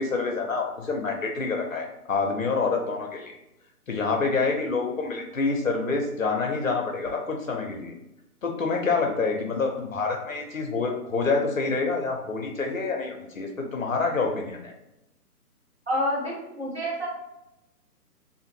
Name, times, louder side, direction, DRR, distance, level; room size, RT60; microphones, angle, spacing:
voice 1, 0.0-3.4 3.9-7.9 8.4-14.7, left 4 dB, 55° left, 2 dB, 0.6 m, -27 dB
voice 2, 15.9-17.1, equal, 40° right, -5 dB, 0.8 m, -28 dB
2.8 x 2.5 x 2.6 m, 0.90 s
hypercardioid pair, 180°, 47 cm